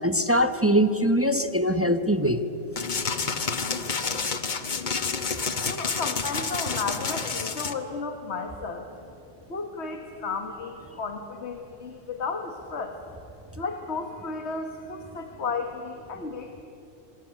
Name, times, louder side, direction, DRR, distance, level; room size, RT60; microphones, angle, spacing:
voice 1, 0.0-2.4, equal, 15° right, 10 dB, 0.8 m, -22 dB
sound 1, 2.8-7.7, left 5 dB, 40° left, 1.2 m, -29 dB
voice 2, 5.6-8.9 9.5-13.0 13.5-16.6, left 4 dB, 60° left, 5 dB, 1.8 m, -33 dB
26.0 x 20.0 x 9.2 m, 2.8 s
omnidirectional pair, 1.3 m